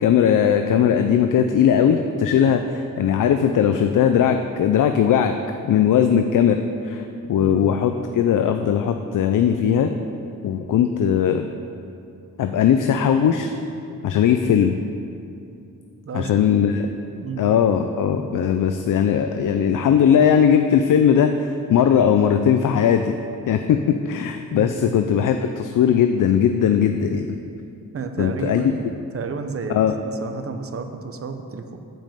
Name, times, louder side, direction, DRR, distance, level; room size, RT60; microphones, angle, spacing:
voice 1, 0.0-5.3 5.7-6.6 6.8-9.9 10.4-11.5 12.4-13.5 14.0-14.8 16.1-16.9 17.4-23.1 23.5-23.8 24.1-27.3 28.2-28.7 29.7-29.9, left 8 dB, 65° left, 7 dB, 0.5 m, -19 dB
voice 2, 7.4-7.8 16.0-16.5 17.1-17.4 24.5-24.9 27.9-31.8, right 4 dB, 40° right, 7 dB, 0.7 m, -31 dB
8.9 x 5.2 x 7.6 m, 2.7 s
wide cardioid pair, 150°, 34 cm